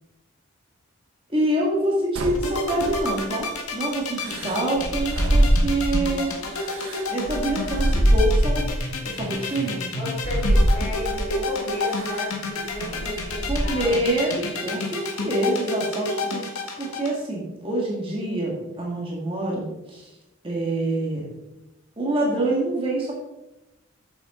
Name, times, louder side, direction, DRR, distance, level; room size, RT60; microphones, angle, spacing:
voice 1, 1.3-6.3 7.1-8.7 9.0-9.8 13.5-16.4 16.8-20.1 20.4-21.3 22.0-23.1, right 1 dB, 25° right, -3 dB, 1.9 m, -26 dB
sound 1, 2.1-3.3 4.2-6.1 6.6-8.8 9.4-9.6 10.2-11.3 11.9-12.2 12.6-13.9, right 1 dB, 75° right, 1.1 m, -23 dB
sound 2, 2.3-17.1, left 3 dB, 80° left, 1.7 m, -30 dB
voice 2, 9.9-14.2, left 1 dB, 30° left, -6 dB, 3.2 m, -33 dB
9.2 x 7.1 x 3.8 m, 0.95 s
head